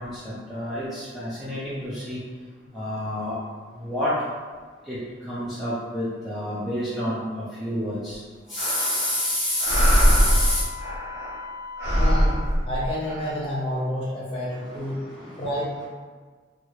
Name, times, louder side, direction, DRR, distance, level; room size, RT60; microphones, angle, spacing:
voice 1, 0.0-2.2 2.7-3.4 3.8-4.1 4.9-8.2 8.5-10.6 14.6-15.5, left 1 dB, ahead, -11 dB, 0.4 m, -29 dB
Wind instrument woodwind instrument, 8.5-12.5, left 5 dB, 55° left, 0.5 m, -40 dB
sound 1, 8.6-9.2 9.6-11.4 11.8-13.3, equal, 60° right, 1.1 m, -22 dB
voice 2, 11.4-15.0 15.4-15.9, equal, 30° left, -7 dB, 0.8 m, -30 dB
2.9 x 2.3 x 3.0 m, 1.5 s
head